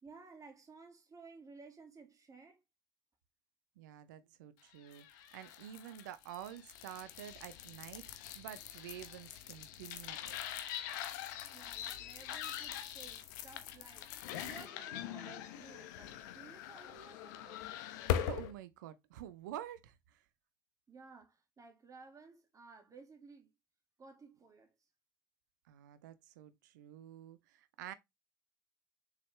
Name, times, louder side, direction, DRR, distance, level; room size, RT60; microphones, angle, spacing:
voice 1, 0.0-2.6 11.5-14.1 14.4-17.7 20.9-23.5 24.0-24.7, right 4 dB, 35° right, 2.0 m, -56 dB
voice 2, 3.8-10.4 18.2-20.2 25.7-27.9, right 11 dB, 80° right, 0.6 m, -49 dB
sound 1, 4.9-18.5, left 11 dB, 75° left, 0.9 m, -42 dB
6.7 x 4.9 x 3.1 m
hypercardioid pair, 55°, 10 cm